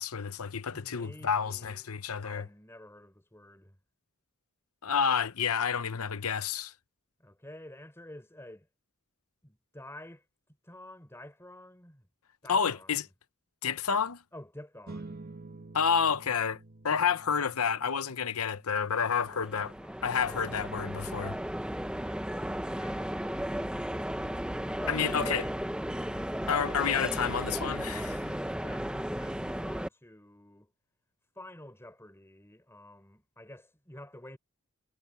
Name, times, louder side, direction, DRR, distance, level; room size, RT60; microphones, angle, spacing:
voice 1, 0.0-2.5 4.8-6.7 12.5-13.1 13.6-14.2 15.7-16.6 16.8-19.7 20.0-21.4 24.9-25.4 26.5-28.2, left 6 dB, 75° left, 0.9 m, -29 dB
voice 2, 0.7-1.9 2.2-3.8 7.2-8.7 9.4-10.3 10.6-12.1 12.4-12.9 14.3-15.2 19.8-20.6 22.0-24.1 24.8-26.3 28.0-30.7 31.3-34.4, left 1 dB, 10° left, 4.1 m, -49 dB
sound 1, 14.9-25.6, right 2 dB, 45° right, 1.3 m, -52 dB
sound 2, 19.0-29.9, equal, 5° right, 0.9 m, -35 dB
head